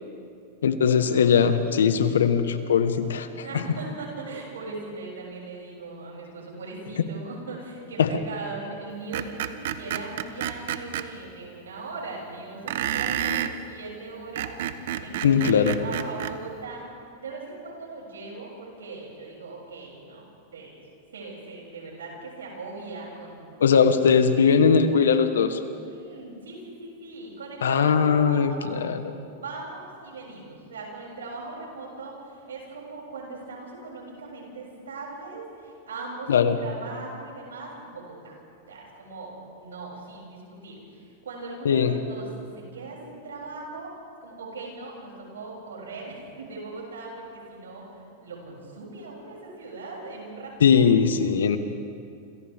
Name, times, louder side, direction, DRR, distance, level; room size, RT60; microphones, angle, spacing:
voice 1, 0.6-3.6 8.0-8.1 15.2-15.8 23.6-25.6 27.6-29.0 36.3-36.6 41.6-42.0 50.6-51.6, left 6 dB, 85° left, 9 dB, 1.4 m, -20 dB
voice 2, 3.4-16.9 17.2-20.3 20.5-20.8 21.1-23.8 24.0-24.4 25.8-28.8 29.3-38.4 38.7-42.3 42.5-50.9, right 3 dB, 90° right, -2 dB, 7.6 m, -39 dB
Screech, 9.1-11.1 12.7-13.6 14.2-16.4, right 10 dB, 70° right, 1.0 m, -29 dB
29.0 x 27.0 x 3.7 m, 2.4 s
hypercardioid pair, 110°, 0 cm